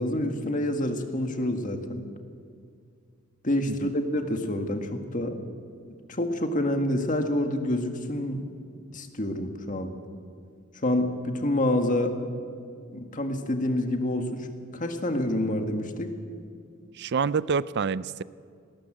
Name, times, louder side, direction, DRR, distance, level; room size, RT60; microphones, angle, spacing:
voice 1, 0.0-2.0 3.4-5.4 6.1-8.4 8.9-9.9 10.8-12.2 12.9-14.5 14.7-16.1, left 1 dB, 40° left, 5 dB, 1.8 m, -27 dB
voice 2, 16.9-18.2, right 5 dB, 55° right, 18 dB, 0.5 m, -27 dB
19.0 x 19.0 x 7.6 m, 2.3 s
head